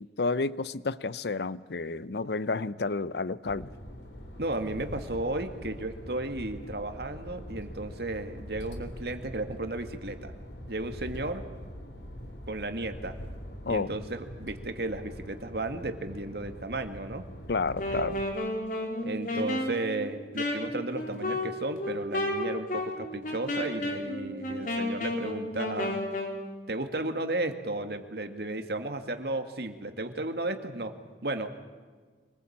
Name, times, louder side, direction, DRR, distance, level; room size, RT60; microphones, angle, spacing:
voice 1, 0.0-3.7 13.7-13.9 17.5-18.2, left 3 dB, 70° left, 0.7 m, -30 dB
sound 1, 3.4-18.3, equal, 85° left, 3.2 m, -43 dB
voice 2, 4.4-10.3 10.7-11.4 12.5-13.2 13.7-17.3 19.0-25.9 26.7-30.9 31.2-31.5, right 2 dB, 65° right, 2.1 m, -34 dB
Wind instrument woodwind instrument, 17.7-26.4, left 1 dB, 50° left, 4.2 m, -32 dB
25.5 x 20.0 x 8.7 m
head